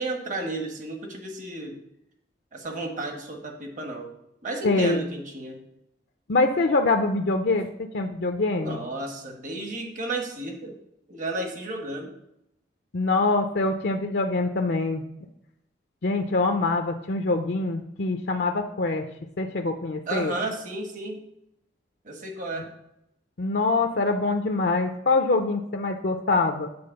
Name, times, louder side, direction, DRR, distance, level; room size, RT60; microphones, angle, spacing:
voice 1, 0.0-1.8 2.5-4.1 4.4-5.6 8.6-10.8 11.1-12.1 20.1-21.2 22.0-22.7, right 2 dB, 45° right, 3 dB, 1.3 m, -32 dB
voice 2, 4.6-5.0 6.3-7.7 7.9-8.8 12.9-15.0 16.0-19.1 19.4-20.3 23.4-26.7, left 3 dB, 65° left, 5 dB, 0.5 m, -24 dB
8.7 x 4.1 x 6.4 m, 0.80 s
head